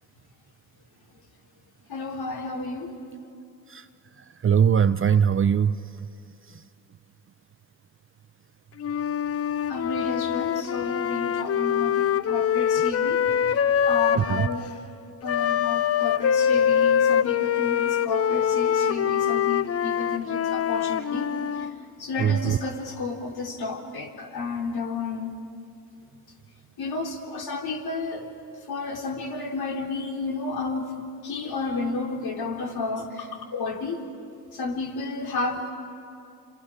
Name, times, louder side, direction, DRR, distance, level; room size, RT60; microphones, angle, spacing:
voice 1, 1.9-3.0 9.7-14.7 15.2-21.7 22.0-25.3 26.8-28.3 28.7-30.9 31.2-34.1 34.5-35.7, left 3 dB, 55° left, 1 dB, 3.5 m, -32 dB
voice 2, 4.4-5.8 14.1-14.5 22.2-22.6, right 8 dB, 30° right, 12 dB, 0.7 m, -21 dB
Wind instrument woodwind instrument, 8.8-14.6 15.2-21.7, left 8 dB, 30° left, 0.7 m, -24 dB
30.0 x 26.0 x 5.0 m, 2.5 s
hypercardioid pair, 60°, 45 cm